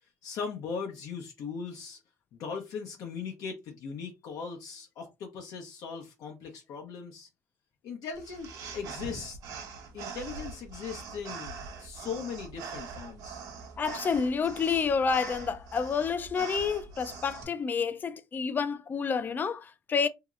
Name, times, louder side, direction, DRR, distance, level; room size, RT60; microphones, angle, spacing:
voice 1, 0.2-2.0 2.4-7.3 7.8-9.4 9.9-13.4, left 6 dB, 75° left, 0.7 m, -39 dB
sound 1, 8.2-17.4, right 5 dB, 75° right, 0.9 m, -43 dB
voice 2, 13.8-20.1, left 5 dB, 30° left, 0.3 m, -29 dB
2.9 x 2.8 x 2.4 m
cardioid pair, 110°, 6 cm